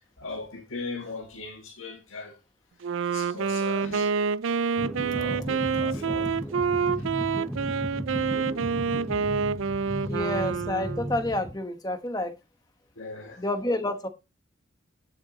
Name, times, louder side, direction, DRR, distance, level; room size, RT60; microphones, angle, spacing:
voice 1, 0.2-2.4 3.0-4.1 5.1-6.4 7.0-7.1 8.0-8.7 13.0-13.4, left 3 dB, 80° left, 1.8 m, -39 dB
Wind instrument woodwind instrument, 2.8-11.1, right 5 dB, 80° right, 0.4 m, -27 dB
sound 1, 4.8-11.6, equal, ahead, 0.7 m, -35 dB
voice 2, 10.0-12.3 13.4-14.1, left 1 dB, 20° left, 1.1 m, -29 dB
10.5 x 6.5 x 4.0 m
head